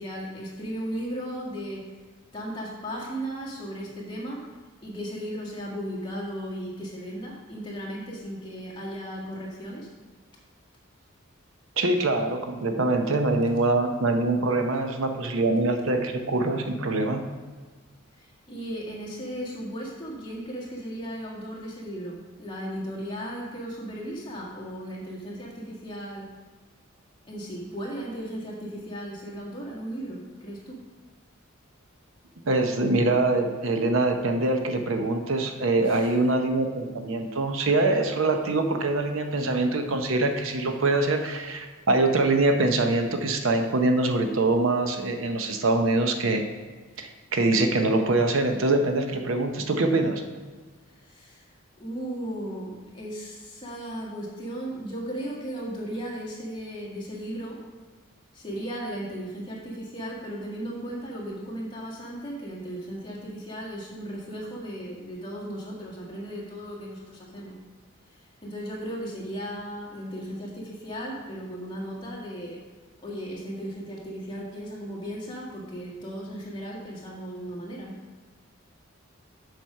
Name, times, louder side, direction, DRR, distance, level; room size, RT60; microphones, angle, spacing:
voice 1, 0.0-1.8 2.3-4.4 4.8-9.9 14.7-14.8 18.1-26.3 27.3-30.8 35.8-36.2 50.9-51.4 51.8-57.6 58.3-67.6 68.1-72.6 73.0-78.0, equal, 20° left, -4 dB, 1.6 m, -36 dB
voice 2, 11.8-17.3 32.5-46.5 47.0-50.2, right 2 dB, 70° right, 5 dB, 0.7 m, -24 dB
7.5 x 5.1 x 5.4 m, 1.4 s
head